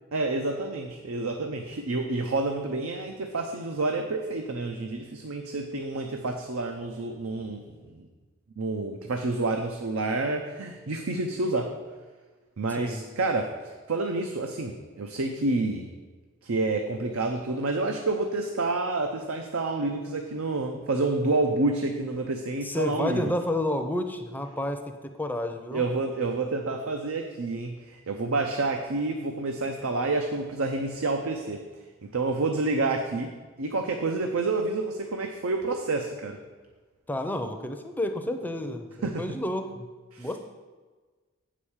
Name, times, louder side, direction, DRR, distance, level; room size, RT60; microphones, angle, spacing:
voice 1, 0.1-8.1 8.6-11.7 12.6-15.9 16.4-23.3 24.6-24.7 25.7-31.6 32.0-33.3 33.6-36.4 39.0-39.2 40.1-40.3, right 2 dB, 80° right, 4 dB, 0.6 m, -29 dB
voice 2, 12.7-13.0 22.6-25.8 37.1-39.9 40.2-40.4, left 1 dB, 10° left, 6 dB, 0.5 m, -30 dB
7.9 x 5.0 x 7.1 m, 1.4 s
head